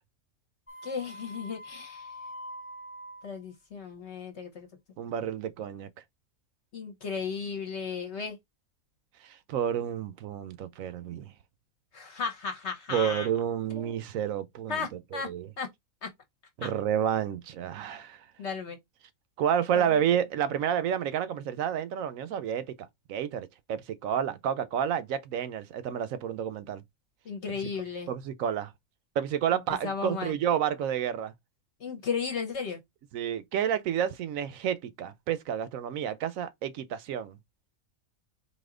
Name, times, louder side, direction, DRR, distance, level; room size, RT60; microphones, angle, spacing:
sound 1, 0.7-3.3, left 1 dB, 10° left, 0.7 m, -44 dB
voice 1, 0.8-2.1 3.2-4.7 6.7-8.4 11.9-13.3 13.7-14.0 14.7-15.3 15.6-15.7 16.0-16.1 16.6-16.7 18.4-18.8 19.9-20.0 27.3-28.1 29.8-30.4 31.8-32.8, left 5 dB, 55° left, 1.0 m, -35 dB
voice 2, 5.0-5.9 9.2-11.3 12.9-14.9 15.1-15.5 16.6-18.2 19.4-26.8 27.5-27.6 28.1-28.7 29.2-31.3 33.1-37.4, right 9 dB, 75° right, 1.0 m, -30 dB
4.1 x 2.8 x 3.6 m
omnidirectional pair, 1.5 m